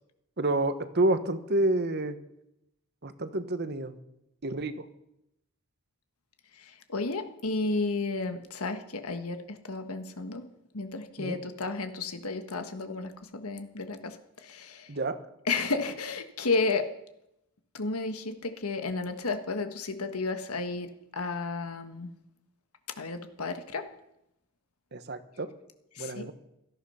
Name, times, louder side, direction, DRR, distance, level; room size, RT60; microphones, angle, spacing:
voice 1, 0.4-2.2 3.0-4.0 4.4-4.9 11.2-11.4 14.9-15.2 24.9-25.5 26.0-26.3, right 2 dB, 50° right, 11 dB, 1.2 m, -29 dB
voice 2, 6.9-10.4 10.7-14.2 14.4-14.9 15.5-16.9 17.7-22.1 23.0-23.9 25.9-26.2, left 3 dB, 80° left, 8 dB, 1.5 m, -32 dB
17.5 x 13.5 x 5.7 m, 0.82 s
head